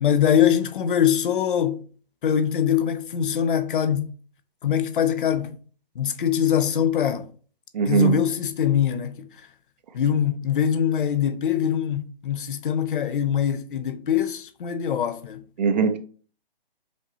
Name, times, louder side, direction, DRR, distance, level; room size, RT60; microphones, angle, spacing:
voice 1, 0.0-1.8 2.2-4.1 4.6-5.6 6.0-7.3 7.8-9.3 9.9-15.4, left 9 dB, 60° left, 0.6 m, -23 dB
voice 2, 7.7-8.2 15.6-16.0, right 6 dB, 45° right, 0.6 m, -20 dB
5.1 x 2.7 x 3.0 m
hypercardioid pair, 155°, 30 cm